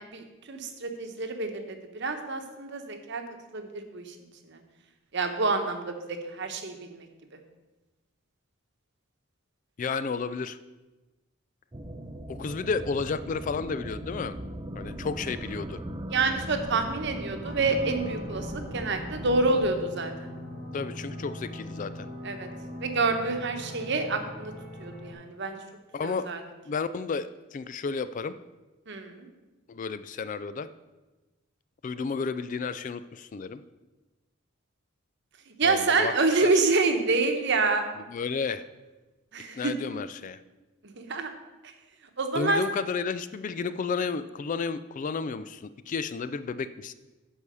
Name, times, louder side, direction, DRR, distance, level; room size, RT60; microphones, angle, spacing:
voice 1, 0.0-3.2 3.5-4.1 4.5-4.6 5.1-7.1 16.1-18.5 18.7-20.3 22.2-22.5 22.8-24.5 24.8-25.6 26.0-26.4 28.9-29.3 35.6-37.9 39.3-39.7 41.0-41.3 42.2-42.6, right 3 dB, 55° right, 6 dB, 1.1 m, -27 dB
voice 2, 9.8-10.6 12.3-14.3 14.8-15.8 20.7-22.1 25.9-26.3 26.7-28.3 29.7-30.7 31.8-33.6 35.6-36.1 36.4-36.5 38.1-38.6 39.5-40.4 42.4-46.9, left 5 dB, 35° left, 13 dB, 0.3 m, -32 dB
sound 1, 11.7-19.7, equal, 20° right, 0.5 m, -38 dB
sound 2, 17.4-25.1, left 1 dB, 55° left, 3.1 m, -41 dB
10.0 x 4.8 x 6.8 m, 1.1 s
head